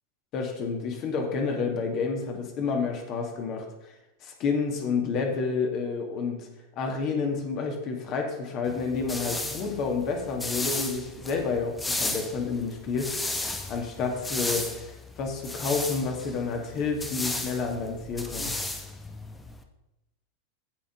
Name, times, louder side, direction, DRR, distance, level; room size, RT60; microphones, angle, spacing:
voice 1, 0.3-3.6 4.2-6.5 6.8-13.2 13.7-18.6, left 4 dB, 35° left, 2 dB, 2.1 m, -29 dB
sound 1, 8.7-19.6, left 2 dB, 10° left, 1.0 m, -34 dB
16.0 x 5.9 x 3.9 m, 0.96 s
figure-of-eight pair, 90°, 0 cm